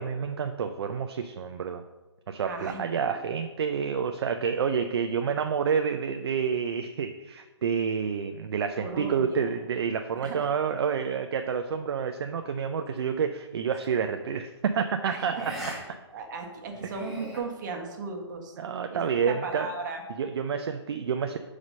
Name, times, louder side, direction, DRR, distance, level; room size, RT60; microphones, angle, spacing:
voice 1, 0.0-1.8 2.3-15.5 15.9-16.0 16.8-16.9 18.6-19.7 20.2-21.4, right 6 dB, 60° right, 7 dB, 0.5 m, -29 dB
voice 2, 2.4-3.2 8.7-9.5 10.2-10.5 15.0-15.4 16.1-18.5 18.9-20.0, right 3 dB, 40° right, 2 dB, 1.4 m, -36 dB
sound 1, 13.7-14.0 15.3-15.8 16.1-16.2 16.7-17.4, equal, ahead, 1.7 m, -39 dB
5.4 x 4.9 x 6.2 m, 1.2 s
hypercardioid pair, 155°, 15 cm